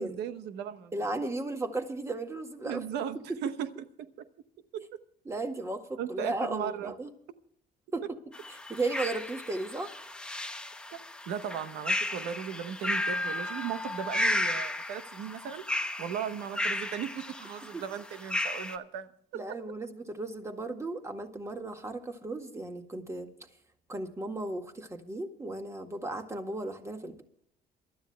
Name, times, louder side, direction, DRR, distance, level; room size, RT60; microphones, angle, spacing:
voice 1, 0.0-0.9 2.6-3.7 4.0-4.1 4.7-5.0 6.0-6.9 11.3-15.7 16.0-19.6, right 8 dB, 85° right, 11 dB, 1.0 m, -37 dB
voice 2, 0.9-2.8 5.2-7.1 7.9-8.1 8.7-9.9 17.7-17.8 19.3-23.3 23.9-27.2, right 2 dB, 15° right, 5 dB, 1.8 m, -35 dB
sound 1, 8.3-18.8, left 1 dB, 5° left, 0.8 m, -34 dB
27.5 x 12.5 x 2.3 m, 0.71 s
cardioid pair, 110°, 17 cm